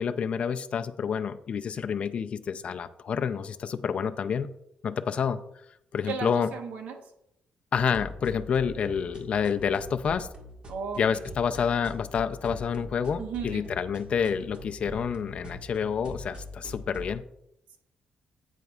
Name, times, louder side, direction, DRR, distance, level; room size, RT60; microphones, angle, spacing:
voice 1, 0.0-4.5 4.8-5.4 5.9-6.5 7.7-10.3 11.0-17.2, left 7 dB, 45° left, 9 dB, 0.5 m, -28 dB
voice 2, 6.0-7.0 10.7-11.2 13.2-13.6, right 6 dB, 85° right, 5 dB, 1.1 m, -35 dB
sound 1, 7.8-17.2, left 1 dB, 40° right, 1.6 m, -43 dB
9.2 x 8.3 x 2.4 m, 0.79 s
cardioid pair, 125°, 3 cm